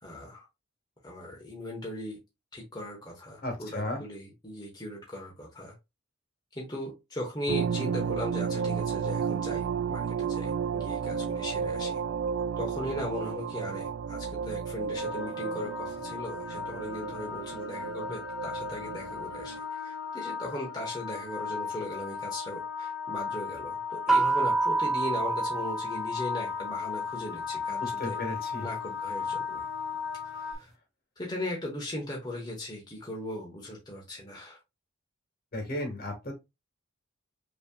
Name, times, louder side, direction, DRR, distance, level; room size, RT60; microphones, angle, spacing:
voice 1, 0.0-0.5 1.0-2.2 2.5-5.7 6.5-12.0 12.6-28.2 28.6-29.7 30.2-30.7 31.2-34.6, left 1 dB, 20° left, -2 dB, 1.1 m, -38 dB
voice 2, 3.4-4.0 27.8-28.7 35.5-36.3, left 1 dB, 50° left, 3 dB, 1.6 m, -34 dB
sound 1, 7.5-19.6, right 6 dB, 70° right, 0.3 m, -33 dB
sound 2, 15.0-30.5, left 6 dB, 70° left, 1.2 m, -36 dB
sound 3, 24.1-26.8, right 3 dB, ahead, 0.6 m, -28 dB
5.6 x 3.2 x 2.3 m, 0.23 s
head